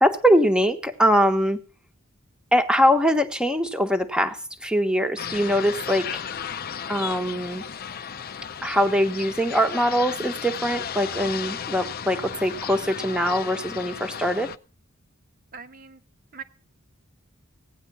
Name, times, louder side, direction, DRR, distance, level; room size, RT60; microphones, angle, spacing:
voice 1, 0.0-1.6 2.5-6.2 6.9-7.6 8.6-14.5, equal, 5° right, 7 dB, 1.3 m, -22 dB
sound 1, 5.2-14.6, left 8 dB, 50° left, 0.6 m, -34 dB
voice 2, 15.5-16.0 16.3-16.4, right 6 dB, 45° right, 8 dB, 1.4 m, -40 dB
17.0 x 9.7 x 5.5 m, 0.37 s
head